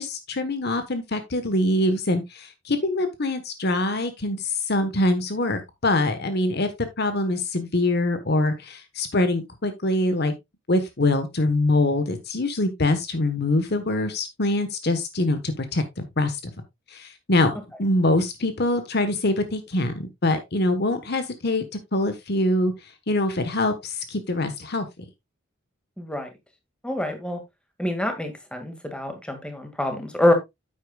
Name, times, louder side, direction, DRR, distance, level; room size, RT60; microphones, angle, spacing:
voice 1, 0.0-6.7 7.0-10.3 10.7-16.5 16.9-21.6 21.9-22.7 23.1-24.9, left 2 dB, 55° left, 1.3 m, -24 dB
voice 2, 26.0-26.3 26.8-27.4 27.8-30.3, left 1 dB, 5° left, 2.1 m, -25 dB
10.0 x 8.4 x 2.4 m
head